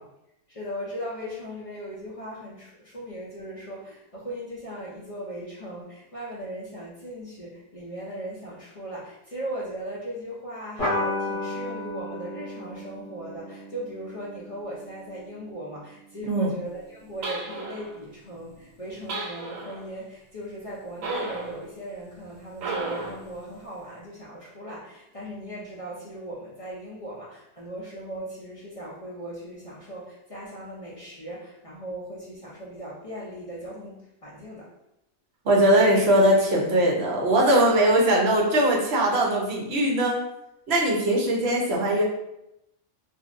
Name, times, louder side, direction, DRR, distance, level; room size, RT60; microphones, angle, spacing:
voice 1, 0.5-34.7, right 1 dB, 55° left, -6 dB, 0.3 m, -38 dB
sound 1, 10.8-15.7, left 2 dB, 35° left, 1.0 m, -33 dB
sound 2, 17.2-18.0 19.1-19.9 21.0-21.6 22.6-23.3, right 3 dB, 85° right, 1.0 m, -33 dB
voice 2, 35.4-40.2 40.7-42.0, right 1 dB, 60° right, -2 dB, 0.9 m, -20 dB
3.0 x 2.5 x 2.5 m, 0.84 s
omnidirectional pair, 1.3 m